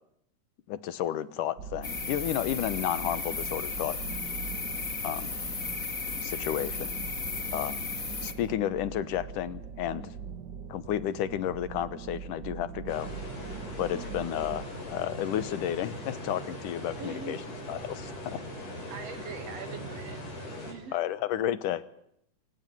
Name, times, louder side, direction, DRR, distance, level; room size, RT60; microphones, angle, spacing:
voice 1, 0.7-4.0 5.0-5.3 6.2-6.9 7.5-7.8 8.2-10.1 10.7-13.1 13.8-17.4 17.7-18.4 20.9-21.8, left 11 dB, 75° left, 17 dB, 2.5 m, -32 dB
sound 1, 1.6-14.7, right 7 dB, 80° right, 0.9 m, -42 dB
sound 2, 1.8-8.3, left 4 dB, 30° left, 2.2 m, -35 dB
sound 3, 12.9-20.7, equal, 50° left, 7.5 m, -40 dB
voice 2, 17.0-17.4 18.9-20.2 20.6-21.0, right 5 dB, 55° right, 10 dB, 3.0 m, -42 dB
27.0 x 16.0 x 9.5 m, 0.77 s
omnidirectional pair, 3.9 m